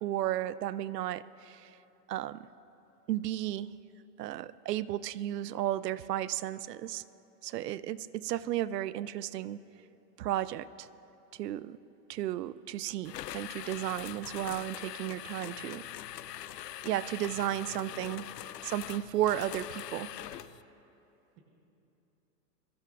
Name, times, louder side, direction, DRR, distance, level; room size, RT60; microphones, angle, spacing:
voice 1, 0.0-1.7 2.1-2.5 3.1-3.8 4.2-7.0 7.4-9.7 10.2-10.9 11.3-11.8 12.1-15.8 16.8-18.3 18.6-20.1, right 13 dB, 75° right, 17 dB, 0.6 m, -34 dB
sound 1, 13.0-20.6, left 12 dB, 80° left, 0.6 m, -43 dB
voice 2, 17.3-17.6 17.9-18.2, right 3 dB, 25° right, -2 dB, 1.1 m, -54 dB
22.5 x 15.5 x 2.5 m, 3.0 s
hypercardioid pair, 170°, 49 cm